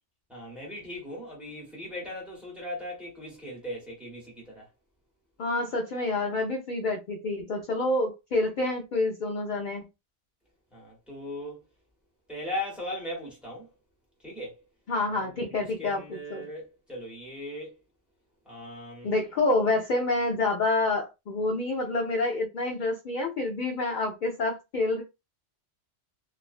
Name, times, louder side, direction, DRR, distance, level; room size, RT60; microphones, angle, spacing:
voice 1, 0.3-4.7 10.7-11.6 12.3-13.7 14.2-14.6 15.1-17.8 18.4-19.1, left 1 dB, ahead, 1.0 m, -38 dB
voice 2, 5.4-9.8 14.9-16.0 16.3-16.4 19.0-25.0, left 2 dB, 60° left, 0.5 m, -28 dB
2.4 x 2.2 x 2.3 m
omnidirectional pair, 1.2 m